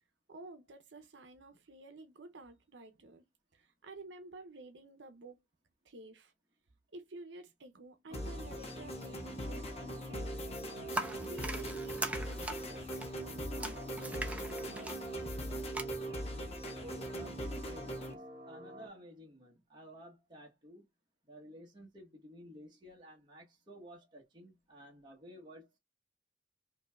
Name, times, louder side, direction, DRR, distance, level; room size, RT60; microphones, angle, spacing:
voice 1, 0.3-3.2 3.5-5.4 5.8-6.3 6.9-10.4 11.2-14.4 21.5-21.7, right 2 dB, 80° right, 0.7 m, -51 dB
sound 1, 8.1-18.1, equal, 35° left, 0.8 m, -41 dB
sound 2, 8.1-18.9, right 1 dB, 60° right, 1.2 m, -50 dB
sound 3, 10.9-15.8, right 2 dB, 10° right, 0.6 m, -41 dB
voice 2, 16.8-20.9 21.2-25.7, equal, 25° right, 1.1 m, -54 dB
5.2 x 2.8 x 2.3 m
head